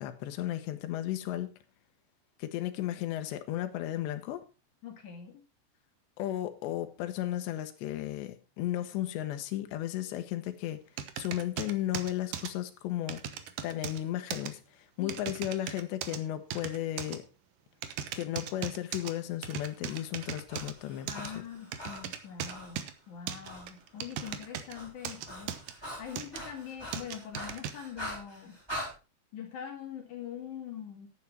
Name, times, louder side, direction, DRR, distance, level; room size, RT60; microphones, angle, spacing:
voice 1, 0.0-1.5 2.4-4.4 6.2-10.8 11.2-13.2 13.6-17.2 18.2-21.3, left 13 dB, 80° left, 3.3 m, -34 dB
voice 2, 4.8-5.4 15.0-15.2 21.1-28.6 29.3-31.1, left 8 dB, 55° left, 2.8 m, -43 dB
sound 1, 11.0-12.5 13.1-14.0 14.3-14.5 15.1-16.2 16.5-17.2 17.8-19.1 19.4-20.7 21.1-21.3 21.7-22.9 23.3-24.7 25.0-25.7 26.1-26.4 26.9-27.7, right 9 dB, 70° right, 2.1 m, -38 dB
Breathing, 19.6-22.8 23.4-23.7 24.0-28.9, equal, 5° right, 3.5 m, -43 dB
11.0 x 9.2 x 4.5 m
omnidirectional pair, 5.0 m